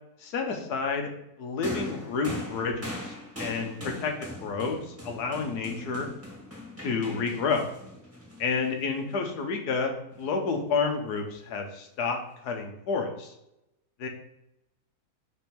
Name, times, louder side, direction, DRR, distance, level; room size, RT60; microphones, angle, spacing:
voice 1, 0.2-1.1 1.4-6.1 6.8-7.7 8.4-12.2 12.4-13.3 14.0-14.1, left 4 dB, 90° left, 4 dB, 1.5 m, -30 dB
sound 1, 1.6-9.1 10.1-10.3, left 1 dB, 10° right, 1.3 m, -40 dB
5.3 x 4.1 x 4.5 m, 0.84 s
omnidirectional pair, 1.7 m